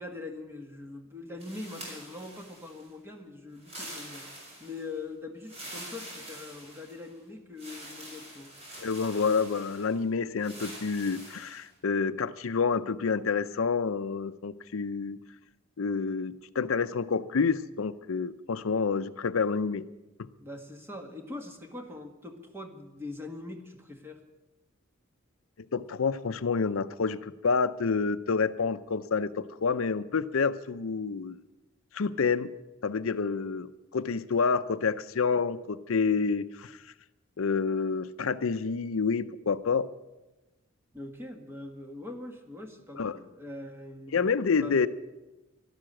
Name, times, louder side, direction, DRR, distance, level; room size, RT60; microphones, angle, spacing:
voice 1, 0.0-4.3 4.6-8.5 20.4-24.2 40.9-44.3 44.6-44.8, left 2 dB, 10° right, 4 dB, 1.8 m, -42 dB
sound 1, 1.4-2.9 3.6-4.9 5.4-7.1 7.6-10.0 10.4-11.7, right 1 dB, 30° right, 5.1 m, -45 dB
voice 2, 8.8-15.2 15.8-19.8 25.7-31.4 31.9-32.5 32.8-36.8 37.4-39.9 43.0-43.1 44.1-44.9, left 5 dB, 75° left, 13 dB, 0.6 m, -28 dB
12.5 x 12.5 x 8.7 m, 1.0 s
head